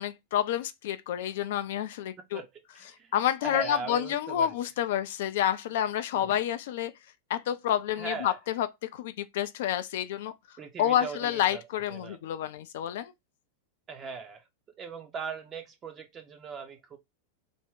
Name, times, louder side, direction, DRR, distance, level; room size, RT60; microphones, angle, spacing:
voice 1, 0.0-2.4 3.1-6.9 7.3-10.3 10.8-13.1, left 11 dB, 55° left, 0.4 m, -29 dB
voice 2, 2.7-3.1 3.4-4.5 6.1-6.4 8.0-8.4 10.6-11.6 11.9-12.2 13.9-14.5 14.8-17.0, right 5 dB, 25° right, 0.5 m, -39 dB
3.4 x 2.1 x 3.7 m
figure-of-eight pair, 90°, 0 cm